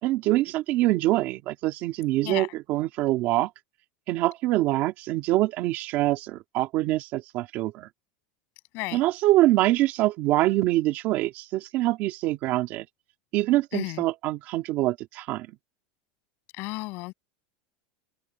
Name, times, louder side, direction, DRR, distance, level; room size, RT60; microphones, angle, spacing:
voice 1, 0.0-3.5 4.1-7.9 8.9-12.9 13.3-15.5, right 16 dB, 40° right, 2.2 m, -24 dB
voice 2, 13.7-14.0 16.6-17.1, left 24 dB, 45° left, 7.1 m, -33 dB
open air
supercardioid pair, 170°, 5 cm